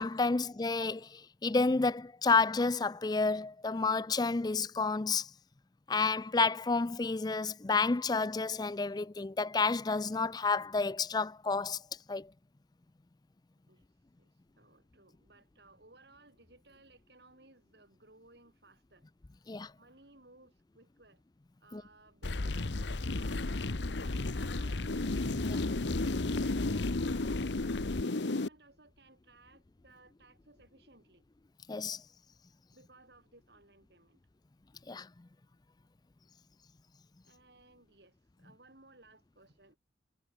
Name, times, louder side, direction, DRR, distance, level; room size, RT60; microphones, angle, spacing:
voice 1, 0.0-5.3 5.9-11.8 12.1-12.3 19.5-19.7 21.7-21.8 25.5-25.6 31.7-32.0 34.9-35.1, left 4 dB, 20° left, 0.4 m, -30 dB
voice 2, 14.2-19.1 19.8-21.2 21.6-23.7 24.0-25.1 25.6-31.3 32.7-34.2 37.2-39.8, right 2 dB, 65° right, 6.8 m, -61 dB
sound 1, 22.2-28.5, left 2 dB, 80° left, 1.1 m, -32 dB
head